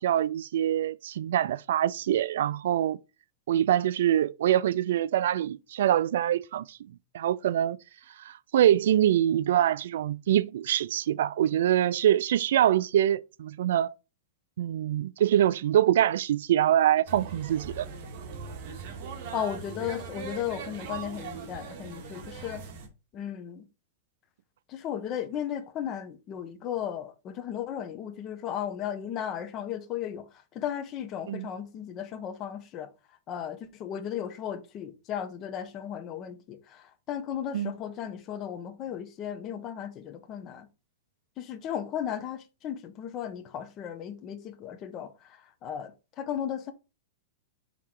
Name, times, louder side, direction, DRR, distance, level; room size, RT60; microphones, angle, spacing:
voice 1, 0.0-3.0 3.5-6.8 7.1-7.8 8.2-13.9 14.6-17.9 31.3-31.5 37.5-37.7, right 11 dB, 70° right, 0.3 m, -24 dB
sound 1, 17.1-22.9, right 5 dB, 45° right, 1.9 m, -40 dB
voice 2, 19.3-22.6 23.1-23.6 24.7-30.2 30.5-32.9 33.3-36.6 37.1-40.7 41.4-45.1 45.6-45.9 46.2-46.7, left 9 dB, 30° left, 1.0 m, -35 dB
5.8 x 3.8 x 4.7 m
hypercardioid pair, 140°, 0 cm